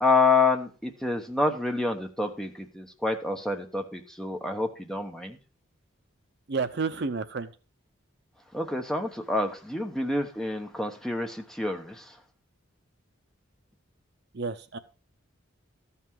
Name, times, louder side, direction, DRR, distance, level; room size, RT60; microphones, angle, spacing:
voice 1, 0.0-5.4 8.5-12.2, left 3 dB, ahead, 4 dB, 0.9 m, -28 dB
voice 2, 6.5-7.5 14.3-14.8, right 4 dB, 55° right, 11 dB, 0.6 m, -30 dB
13.5 x 5.7 x 4.6 m, 0.34 s
head